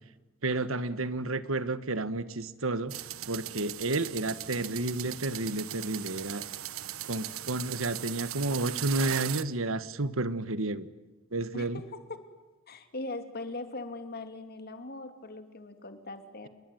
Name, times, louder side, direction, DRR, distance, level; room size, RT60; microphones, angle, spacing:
voice 1, 0.4-2.9 3.3-6.4 7.0-10.9 11.3-11.8, right 2 dB, 75° right, 14 dB, 1.5 m, -31 dB
sound 1, 2.9-9.4, right 12 dB, 90° right, 1.2 m, -38 dB
voice 2, 11.5-12.3 12.7-16.5, left 2 dB, 50° left, 8 dB, 2.9 m, -40 dB
28.5 x 22.5 x 9.4 m, 1.2 s
head